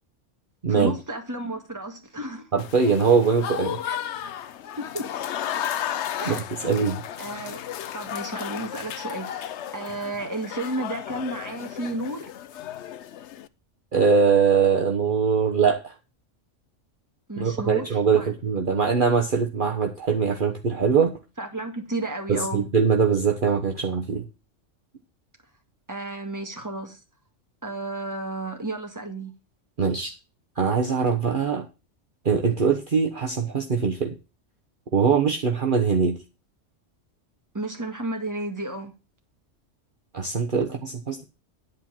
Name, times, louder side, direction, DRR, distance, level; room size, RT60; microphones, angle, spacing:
voice 1, 0.7-2.5 3.9-4.1 4.8-5.1 6.2-6.4 7.2-7.6 7.9-12.3 17.3-18.3 21.4-22.7 25.9-27.0 27.6-29.3 37.5-38.9, right 2 dB, 15° right, 1.9 m, -32 dB
voice 2, 2.5-3.8 6.2-6.4 6.6-7.0 13.9-15.9 17.4-21.1 22.3-24.2 29.8-30.1 30.6-31.7 32.2-34.2 34.9-36.2 40.1-41.2, right 5 dB, 45° right, 1.2 m, -22 dB
Applause / Crowd, 2.6-13.5, left 10 dB, 70° left, 0.9 m, -34 dB
10.5 x 4.5 x 7.4 m
omnidirectional pair, 1.2 m